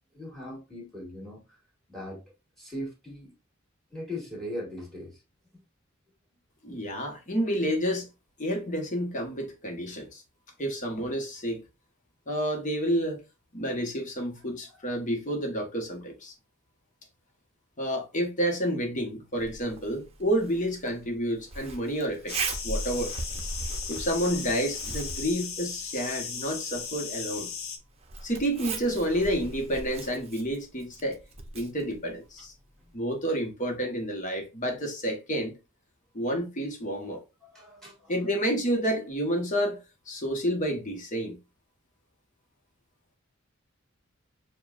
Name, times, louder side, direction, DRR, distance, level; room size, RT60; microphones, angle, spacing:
voice 1, 0.1-1.6 1.9-2.2 2.6-3.3 3.9-5.2 14.7-14.8 37.4-38.4, left 1 dB, ahead, 1.9 m, -39 dB
voice 2, 6.6-8.1 8.4-10.2 10.6-11.6 12.3-13.2 13.5-16.3 17.8-22.4 22.6-23.1 23.9-27.5 28.2-31.2 31.5-32.5 32.9-35.6 36.1-37.2 38.1-41.4, equal, 40° left, 1.1 m, -29 dB
Zipper (clothing), 19.4-32.9, right 3 dB, 30° right, 0.7 m, -40 dB
sound 1, 22.3-27.8, left 6 dB, 80° left, 0.8 m, -37 dB
6.7 x 2.3 x 2.4 m
head